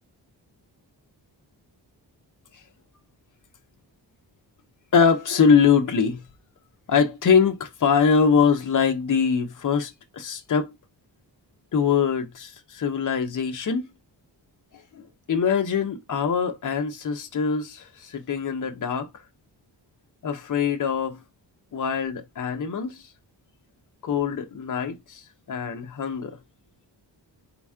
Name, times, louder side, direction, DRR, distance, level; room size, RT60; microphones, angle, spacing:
voice 1, 4.9-6.2 6.9-10.7 11.7-13.8 14.9-19.1 20.2-21.2 21.7-23.0 24.0-26.4, left 6 dB, 45° left, 0.8 m, -23 dB
4.3 x 3.0 x 3.5 m
wide cardioid pair, 155°, 43 cm